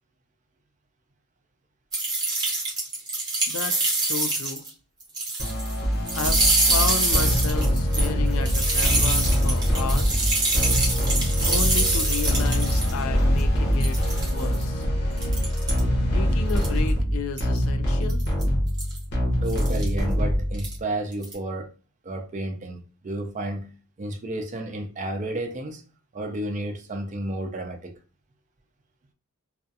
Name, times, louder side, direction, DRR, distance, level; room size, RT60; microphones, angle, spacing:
sound 1, 1.9-4.7 5.0-5.8 6.1-12.9 13.4-13.5 13.8-14.6 15.2-15.8 16.5-16.9 17.4-17.6 18.1-18.4 18.8-19.0 19.5-19.9 20.5-20.8 21.1-21.3, right 2 dB, 15° right, 0.8 m, -25 dB
voice 1, 3.5-4.6 6.1-10.2 11.5-14.8 16.1-18.2, left 5 dB, 70° left, 0.4 m, -33 dB
sound 2, 5.4-20.8, equal, 50° left, 0.8 m, -24 dB
voice 2, 19.4-21.7 22.0-23.7 24.0-25.8 26.1-27.9, right 1 dB, 35° right, 0.4 m, -31 dB
2.4 x 2.3 x 2.6 m
head